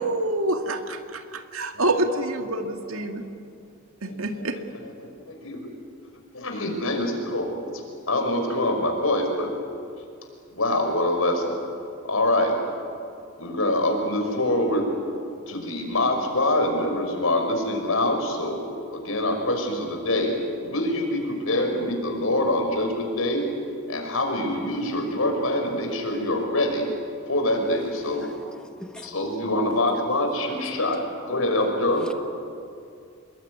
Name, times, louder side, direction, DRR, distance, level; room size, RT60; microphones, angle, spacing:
voice 1, 0.0-3.2 4.0-4.6, right 2 dB, 75° right, 6 dB, 2.1 m, -27 dB
voice 2, 1.7-2.2 2.6-3.3 4.0-5.7 6.3-7.7 8.1-9.5 10.5-11.6 12.0-12.6 13.4-14.9 15.5-18.6 18.9-23.5 23.9-26.9 27.3-28.3 29.0-32.1, left 1 dB, 75° left, 3 dB, 5.7 m, -25 dB
voice 3, 28.1-29.1 30.7-30.8 31.6-31.7, left 1 dB, 5° left, 6 dB, 1.0 m, -44 dB
27.0 x 22.0 x 9.6 m, 2.4 s
head